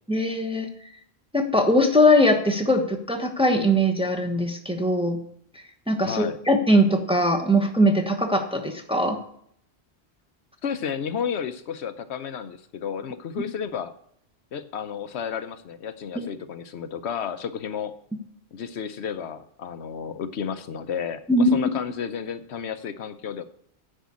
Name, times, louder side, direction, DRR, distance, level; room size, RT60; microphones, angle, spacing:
voice 1, 0.1-0.7 1.3-5.2 5.9-9.2 16.1-16.3 21.3-21.6, equal, 5° right, 3 dB, 1.0 m, -21 dB
voice 2, 6.0-6.4 10.6-13.9 14.5-17.9 18.5-23.4, left 7 dB, 80° left, 11 dB, 1.0 m, -32 dB
10.0 x 5.4 x 8.4 m, 0.67 s
omnidirectional pair, 1.1 m